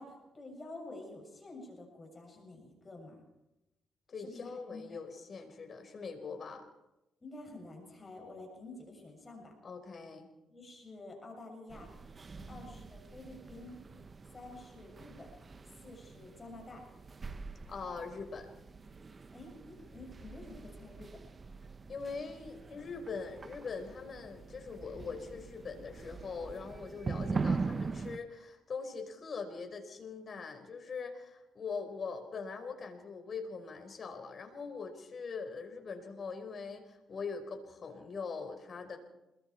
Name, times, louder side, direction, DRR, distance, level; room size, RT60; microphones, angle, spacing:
voice 1, 0.0-3.1 4.2-5.0 7.2-9.5 10.5-11.9 12.5-13.8 14.3-15.3 15.8-16.8 19.3-21.2, left 2 dB, 30° left, 1 dB, 7.3 m, -49 dB
voice 2, 4.1-6.7 9.6-10.3 12.4-12.9 17.7-18.5 21.9-39.0, left 5 dB, 45° left, 5 dB, 5.1 m, -42 dB
sound 1, 11.7-28.2, right 4 dB, 35° right, 1.0 m, -42 dB
29.0 x 22.0 x 4.7 m, 0.93 s
cardioid pair, 90°, 0 cm